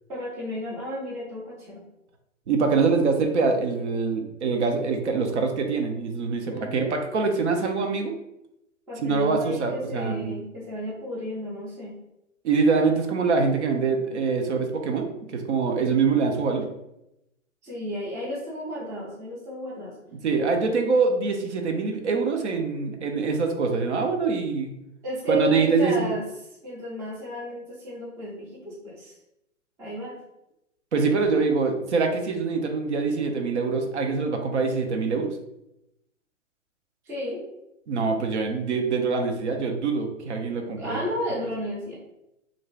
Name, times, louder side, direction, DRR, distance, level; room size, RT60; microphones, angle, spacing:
voice 1, 0.1-1.9 6.5-6.9 8.9-12.0 17.6-20.0 25.0-26.2 26.6-29.2 29.8-30.2 37.0-37.4 40.8-42.0, equal, 10° right, -6 dB, 0.4 m, -33 dB
voice 2, 2.5-8.1 9.0-10.3 12.4-16.7 20.2-24.7 25.3-26.1 30.9-35.4 37.9-41.0, right 4 dB, 65° right, 4 dB, 0.6 m, -24 dB
2.5 x 2.2 x 3.1 m, 0.87 s
figure-of-eight pair, 115°, 38 cm